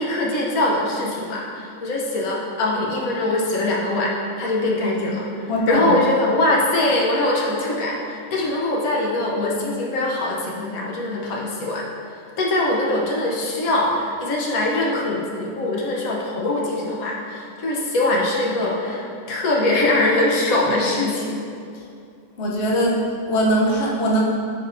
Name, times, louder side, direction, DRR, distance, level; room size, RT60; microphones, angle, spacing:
voice 1, 0.0-21.4, left 2 dB, 80° left, -3 dB, 1.4 m, -22 dB
voice 2, 5.5-6.0 8.4-8.5 22.4-24.2, equal, 55° left, -3 dB, 1.1 m, -21 dB
10.5 x 4.3 x 2.6 m, 2.5 s
omnidirectional pair, 1.5 m